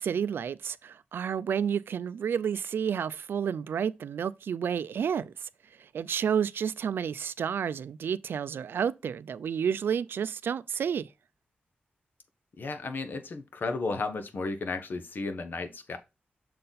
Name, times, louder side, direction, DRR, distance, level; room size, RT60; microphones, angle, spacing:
voice 1, 0.0-5.5 5.8-11.1, right 7 dB, 85° right, 0.4 m, -30 dB
voice 2, 12.6-16.0, left 3 dB, 65° left, 1.0 m, -33 dB
6.6 x 4.1 x 3.9 m
wide cardioid pair, 85°, 4 cm